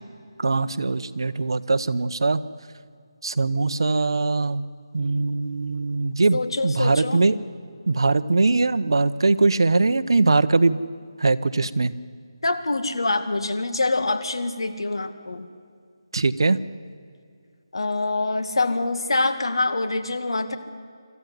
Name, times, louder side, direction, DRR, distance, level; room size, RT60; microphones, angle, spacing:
voice 1, 0.4-2.4 3.2-4.6 4.9-7.4 7.9-10.8 11.2-11.9 16.1-16.6, right 3 dB, 65° right, 13 dB, 0.9 m, -21 dB
voice 2, 6.3-7.2 12.4-15.5 17.7-20.6, left 2 dB, 75° left, 9 dB, 2.0 m, -25 dB
26.5 x 14.0 x 9.4 m, 2.2 s
figure-of-eight pair, 175°, 3 cm